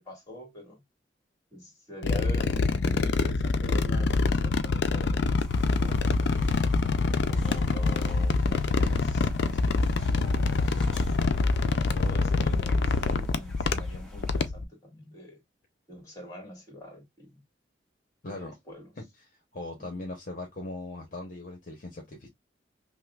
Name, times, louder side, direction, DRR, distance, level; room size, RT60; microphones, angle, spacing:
voice 1, 0.1-0.8 1.5-5.3 5.8-6.0 6.3-6.7 7.3-11.1 11.8-15.4 15.9-17.4 18.3-18.9, left 1 dB, 20° left, 1.8 m, -44 dB
sound 1, 2.0-14.6, left 3 dB, 65° left, 0.4 m, -25 dB
sound 2, 5.4-14.5, right 1 dB, 5° left, 0.9 m, -49 dB
voice 2, 18.2-18.6 19.0-22.3, left 2 dB, 50° left, 0.8 m, -39 dB
5.4 x 2.1 x 2.3 m
head